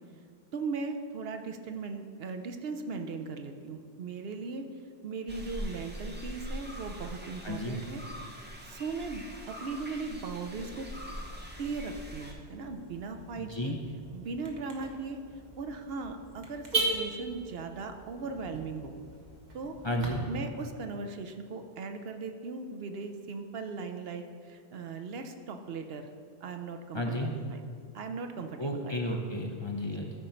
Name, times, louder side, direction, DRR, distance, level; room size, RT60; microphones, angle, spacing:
voice 1, 0.5-4.7 5.0-8.0 8.3-8.4 8.6-10.9 11.6-13.8 14.1-15.2 15.6-19.0 19.5-19.8 20.3-26.1 26.4-27.6 27.9-29.2, right 4 dB, 65° right, 6 dB, 0.8 m, -38 dB
sound 1, 5.3-12.3, equal, 10° right, 1.0 m, -42 dB
voice 2, 7.4-7.8 13.4-13.8 19.8-20.2 26.9-27.3 28.6-30.1, left 1 dB, 30° left, 1 dB, 0.7 m, -32 dB
Car / Alarm, 10.9-20.1, right 2 dB, 45° right, 1.3 m, -39 dB
13.0 x 5.2 x 4.4 m, 2.2 s
omnidirectional pair, 1.1 m